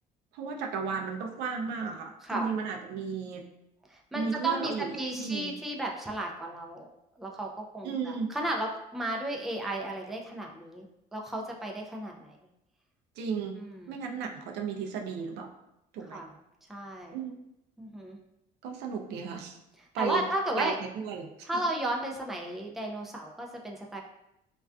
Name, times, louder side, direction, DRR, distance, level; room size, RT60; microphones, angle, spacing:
voice 1, 0.3-3.5 4.1-5.6 7.8-8.3 13.2-13.6 13.9-15.5 15.9-16.2 17.1-17.4 18.6-19.6 19.9-20.2 20.6-21.5, right 5 dB, 85° right, 3 dB, 0.4 m, -34 dB
voice 2, 3.9-6.9 7.2-12.4 13.6-13.9 16.1-16.3 16.7-17.2 17.8-18.2 20.0-20.8 21.4-24.0, right 1 dB, ahead, 0 dB, 0.3 m, -34 dB
2.4 x 2.2 x 2.3 m, 0.85 s
cardioid pair, 110°, 17 cm